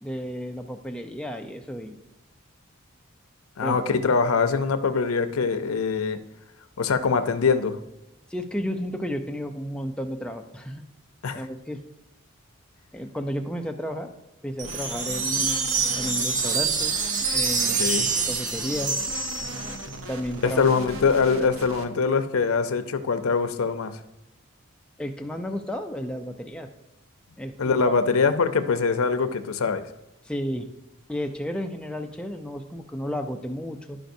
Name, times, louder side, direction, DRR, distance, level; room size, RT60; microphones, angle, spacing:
voice 1, 0.0-2.0 3.6-3.9 8.3-10.8 11.3-11.8 12.9-14.1 14.4-15.7 16.0-17.0 17.3-17.8 18.3-19.0 20.1-20.7 25.0-26.7 27.4-27.8 30.2-30.7 31.1-34.0, equal, 5° left, 4 dB, 0.4 m, -32 dB
voice 2, 3.6-6.2 6.8-7.8 11.2-11.5 17.8-18.1 20.4-24.0 27.6-29.8, left 5 dB, 90° left, 10 dB, 0.6 m, -23 dB
sound 1, 14.6-20.0, right 4 dB, 35° right, 0.7 m, -26 dB
sound 2, 14.6-21.8, right 1 dB, 70° right, 0.8 m, -39 dB
11.5 x 5.0 x 2.6 m, 0.95 s
head